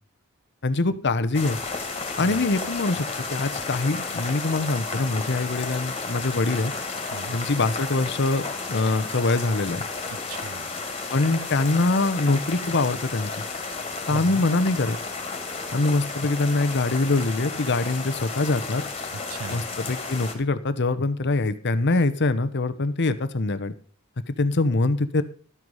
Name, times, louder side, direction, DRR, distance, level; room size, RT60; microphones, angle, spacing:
voice 1, 0.6-1.6 2.2-6.7 7.3-9.8 11.1-13.3 14.1-15.0 15.7-18.8 19.5-23.7 24.4-25.2, left 2 dB, 50° left, 0.9 m, -24 dB
sound 1, 1.3-20.3, left 4 dB, 25° left, 2.3 m, -32 dB
voice 2, 10.1-10.7 14.1-14.5 19.1-19.7, right 5 dB, 65° right, 0.5 m, -38 dB
12.5 x 8.0 x 5.5 m
head